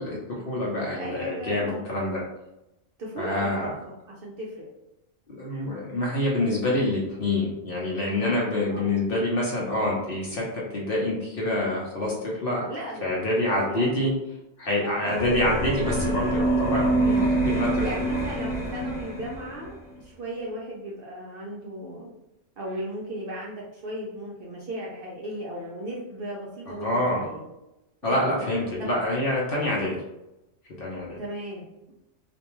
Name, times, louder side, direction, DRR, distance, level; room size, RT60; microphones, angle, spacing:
voice 1, 0.0-2.2 3.2-3.7 5.3-10.4 10.7-12.7 13.0-14.1 14.6-17.8 26.8-27.2 28.0-30.0 30.8-31.2, left 1 dB, 55° left, -4 dB, 0.8 m, -26 dB
voice 2, 1.0-1.9 3.0-4.7 8.7-9.0 12.7-13.2 13.5-14.0 14.8-15.1 17.8-22.1 22.6-27.4 28.0-28.3 28.8-28.9 29.7-29.9 31.2-31.9, right 1 dB, 60° right, -4 dB, 0.6 m, -36 dB
sound 1, 15.1-19.7, right 2 dB, 15° left, 0.3 m, -26 dB
2.5 x 2.2 x 2.9 m, 0.93 s
omnidirectional pair, 1.3 m